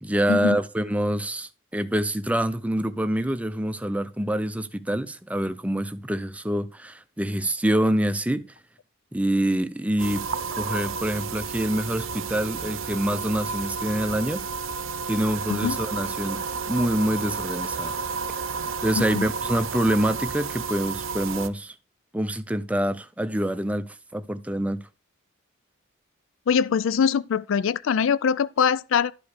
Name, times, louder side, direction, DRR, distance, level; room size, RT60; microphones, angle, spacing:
voice 1, 0.0-8.5 9.1-10.2 10.6-14.4 15.1-16.4 16.7-18.0 18.8-21.7 22.1-24.8, right 1 dB, 5° right, 0.5 m, -26 dB
sound 1, 10.0-21.5, right 5 dB, 75° right, 0.8 m, -31 dB
voice 2, 18.9-19.3 26.5-29.1, left 6 dB, 70° left, 0.4 m, -23 dB
12.0 x 5.0 x 4.9 m
head